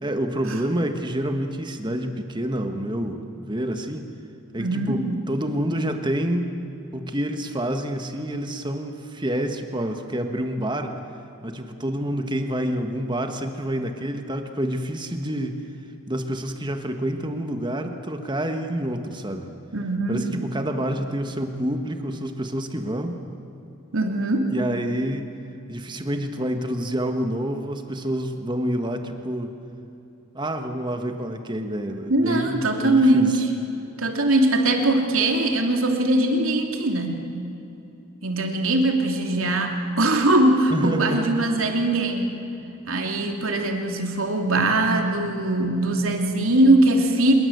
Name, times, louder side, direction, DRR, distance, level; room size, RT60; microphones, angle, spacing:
voice 1, 0.0-4.1 4.5-6.6 6.9-11.0 11.4-15.6 16.1-19.5 20.1-23.2 24.5-25.3 25.7-29.5 30.3-32.6 32.8-33.4 40.7-41.6, right 1 dB, 20° right, 6 dB, 1.5 m, -28 dB
voice 2, 4.6-5.0 19.7-20.2 23.9-24.5 32.1-33.5 34.0-37.2 38.2-42.3 42.9-47.3, right 1 dB, 75° right, 3 dB, 2.9 m, -21 dB
26.0 x 22.0 x 8.0 m, 2.9 s
head